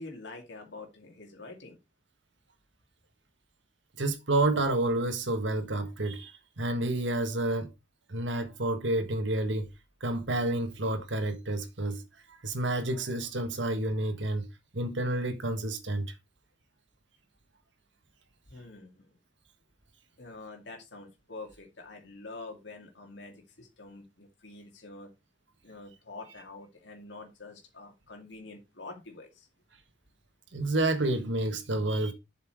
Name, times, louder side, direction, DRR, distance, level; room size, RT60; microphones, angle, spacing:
voice 1, 0.0-1.8 18.5-19.1 20.2-25.1 25.6-29.5, left 3 dB, 70° left, 2.3 m, -46 dB
voice 2, 4.0-7.7 8.1-9.7 10.0-12.0 12.3-14.5 14.7-16.1 30.5-32.1, right 2 dB, 80° right, 1.5 m, -29 dB
7.7 x 5.8 x 4.6 m
head